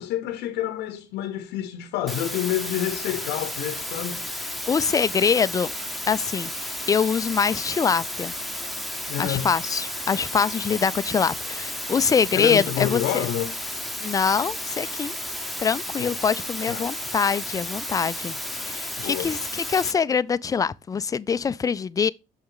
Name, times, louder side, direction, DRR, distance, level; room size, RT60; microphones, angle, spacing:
voice 1, 0.0-4.2 9.1-9.5 12.3-13.5 16.0-16.2 16.7-16.9 19.0-19.3, left 11 dB, 90° left, 0.7 m, -28 dB
sound 1, 2.1-19.9, left 1 dB, ahead, 0.9 m, -33 dB
voice 2, 4.7-5.7 6.1-8.3 9.2-13.3 14.0-15.1 15.6-22.1, left 6 dB, 20° left, 0.3 m, -24 dB
6.5 x 5.7 x 3.8 m
cardioid pair, 110°, 17 cm